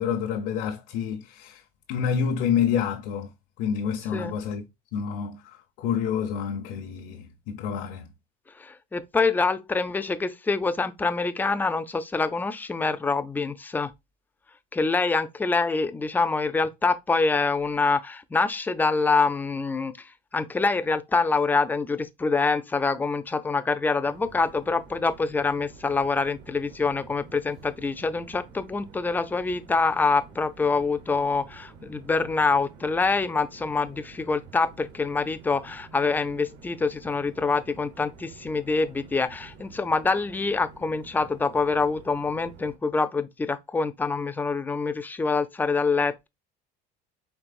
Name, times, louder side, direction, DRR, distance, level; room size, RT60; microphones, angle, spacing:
voice 1, 0.0-1.6 1.9-3.3 3.6-4.6 4.9-8.1, left 7 dB, 75° left, 0.8 m, -28 dB
voice 2, 8.6-13.9 14.7-20.1 20.3-46.3, left 4 dB, 10° left, 0.4 m, -25 dB
sound 1, 24.0-42.8, right 4 dB, 60° right, 1.0 m, -49 dB
4.6 x 3.2 x 2.4 m
cardioid pair, 125°, 20 cm